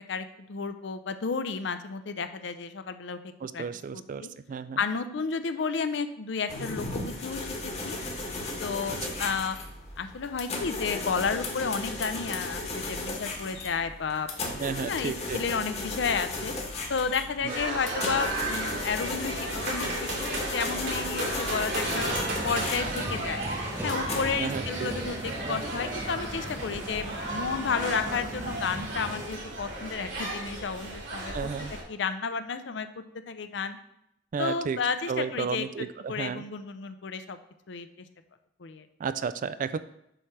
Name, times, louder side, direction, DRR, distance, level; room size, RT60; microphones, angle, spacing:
voice 1, 0.0-3.6 3.9-4.3 4.8-8.0 8.6-9.6 10.0-14.3 14.8-16.5 16.9-22.1 22.4-23.4 23.8-33.8 34.4-37.4 37.7-37.9 38.6-38.9, left 5 dB, 65° left, 10 dB, 0.5 m, -32 dB
voice 2, 3.4-4.8 8.9-9.0 14.6-15.4 17.4-17.5 24.4-24.9 31.3-31.7 34.3-34.8 35.1-36.4 39.0-39.8, right 6 dB, 45° right, 14 dB, 0.3 m, -33 dB
sound 1, 6.5-24.3, left 2 dB, 35° left, 1.2 m, -35 dB
sound 2, 17.5-31.8, right 1 dB, 70° right, 3.0 m, -34 dB
sound 3, 22.0-29.3, right 1 dB, 15° right, 0.7 m, -38 dB
7.8 x 3.2 x 5.8 m, 0.79 s
head